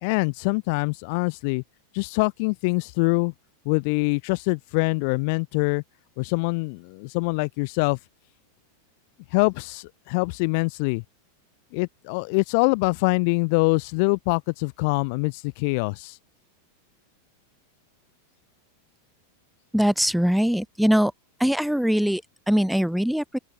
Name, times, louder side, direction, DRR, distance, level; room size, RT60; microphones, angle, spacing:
voice 1, 0.0-1.6 1.9-3.3 3.6-5.8 6.2-8.0 9.3-11.0 11.7-16.1, left 31 dB, 45° left, 3.3 m, -24 dB
voice 2, 19.7-21.1 21.4-23.4, equal, ahead, 3.3 m, -22 dB
open air
figure-of-eight pair, 90°, 0 cm